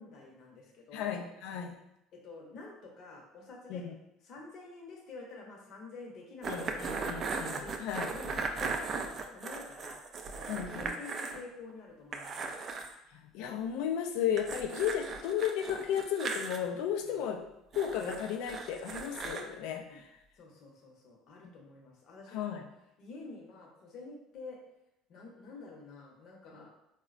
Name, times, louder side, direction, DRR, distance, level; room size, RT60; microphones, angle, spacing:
voice 1, 0.0-1.1 2.1-3.8 4.2-10.0 10.4-12.6 17.0-17.2 19.8-20.0 20.3-22.6 23.0-24.6 25.1-26.7, left 3 dB, 55° left, -1 dB, 0.8 m, -49 dB
voice 2, 0.9-1.8 3.7-3.9 6.5-8.1 10.5-10.9 13.1-17.4 17.7-20.1 22.3-22.6, left 9 dB, 75° left, 4 dB, 0.3 m, -34 dB
sound 1, 6.4-11.4 11.7-11.8 12.1-12.9 14.4-16.6 17.7-19.4, right 4 dB, 40° right, 0.3 m, -38 dB
3.7 x 2.1 x 2.4 m, 0.85 s
supercardioid pair, 105°, 0 cm